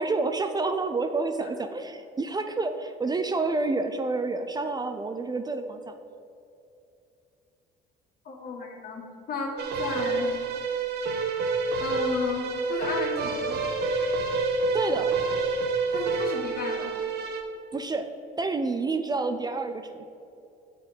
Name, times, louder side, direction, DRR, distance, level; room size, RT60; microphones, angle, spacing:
voice 1, 0.0-5.9 14.7-15.2 17.7-18.1 18.4-20.0, right 3 dB, 20° right, 7 dB, 0.5 m, -29 dB
voice 2, 8.3-10.4 11.8-13.6 15.9-17.0, left 4 dB, 55° left, 0 dB, 1.8 m, -34 dB
sound 1, 9.6-17.4, right 3 dB, 65° right, 1.1 m, -28 dB
6.6 x 5.5 x 7.0 m, 2.7 s
cardioid pair, 95°, 19 cm